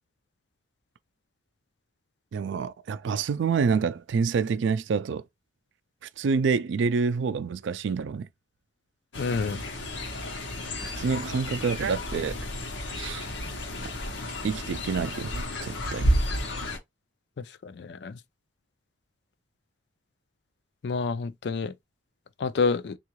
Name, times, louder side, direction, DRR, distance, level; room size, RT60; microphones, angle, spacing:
voice 1, 2.3-5.2 6.2-8.3 10.8-12.4 13.0-13.3 14.4-16.1, right 5 dB, 85° right, 0.3 m, -27 dB
Fowl, 9.1-16.8, equal, 85° left, 0.8 m, -31 dB
voice 2, 9.2-9.6 17.6-18.2 20.8-21.7 22.4-23.0, left 4 dB, 65° left, 0.4 m, -28 dB
3.7 x 2.4 x 3.0 m
head